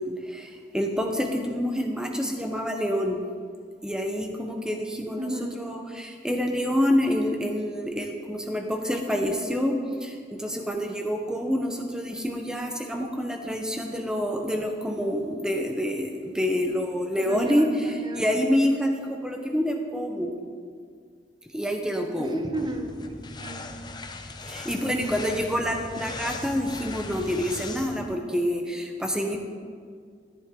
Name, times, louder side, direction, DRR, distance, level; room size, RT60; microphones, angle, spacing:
voice 1, 0.0-3.2 3.8-20.3 21.5-22.4 24.5-29.4, equal, 5° right, 3 dB, 1.0 m, -27 dB
voice 2, 5.2-5.6 17.2-18.3 22.2-23.9 24.8-25.7, right 1 dB, 25° right, 5 dB, 0.9 m, -36 dB
Book Sounds - Rub, 22.5-28.1, left 3 dB, 25° left, 0.6 m, -39 dB
13.5 x 11.0 x 3.8 m, 2.1 s
head